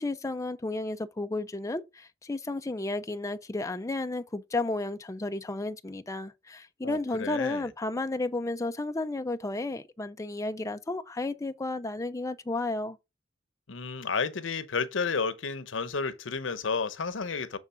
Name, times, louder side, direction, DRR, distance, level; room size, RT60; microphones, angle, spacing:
voice 1, 0.0-13.0, left 2 dB, 15° left, 0.5 m, -33 dB
voice 2, 6.8-7.6 13.7-17.6, left 5 dB, 85° left, 0.8 m, -31 dB
7.2 x 3.6 x 5.6 m
head